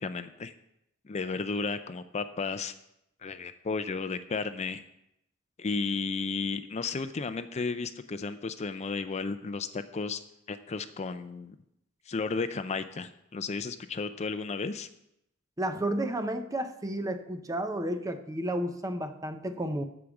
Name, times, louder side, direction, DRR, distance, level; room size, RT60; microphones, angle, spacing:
voice 1, 0.0-0.5 1.1-2.7 3.2-4.8 5.6-10.2 10.5-11.6 12.1-14.9, left 4 dB, 30° left, 11 dB, 0.5 m, -33 dB
voice 2, 15.6-19.8, right 1 dB, 15° right, 8 dB, 0.7 m, -32 dB
12.5 x 5.0 x 7.0 m, 0.81 s
head